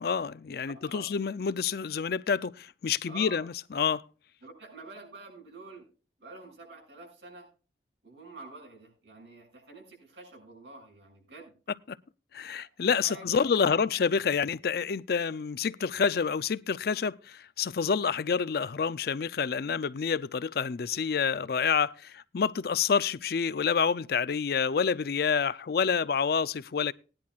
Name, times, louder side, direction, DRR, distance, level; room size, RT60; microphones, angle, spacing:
voice 1, 0.0-4.0 12.3-26.9, left 6 dB, 60° left, 0.4 m, -28 dB
voice 2, 0.7-1.1 3.1-3.5 4.4-5.8 6.2-7.5 8.0-11.5 13.0-13.8, right 3 dB, 85° right, 6.9 m, -47 dB
18.5 x 10.5 x 2.4 m
head